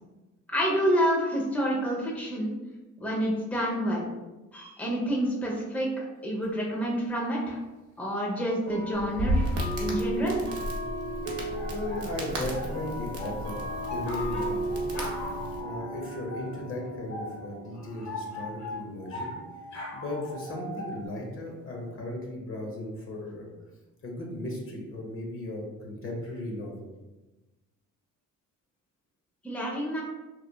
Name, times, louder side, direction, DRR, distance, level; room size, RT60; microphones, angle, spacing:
voice 1, 0.5-2.5 3.0-4.1 4.5-7.6 8.0-9.4 9.8-10.3 29.4-30.0, equal, 5° left, -3 dB, 0.6 m, -28 dB
sound 1, 6.4-6.5 7.6-7.7 8.7-21.9, right 1 dB, 85° right, 0.8 m, -38 dB
Crackle, 8.9-15.6, equal, 50° right, 0.7 m, -34 dB
voice 2, 11.4-14.9 15.2-19.3 19.9-23.5 24.0-26.9, left 1 dB, 45° left, -1 dB, 0.7 m, -36 dB
sound 2, 11.5-21.1, left 1 dB, 65° left, 0.9 m, -40 dB
2.9 x 2.2 x 2.2 m, 1.1 s
cardioid pair, 90°, 30 cm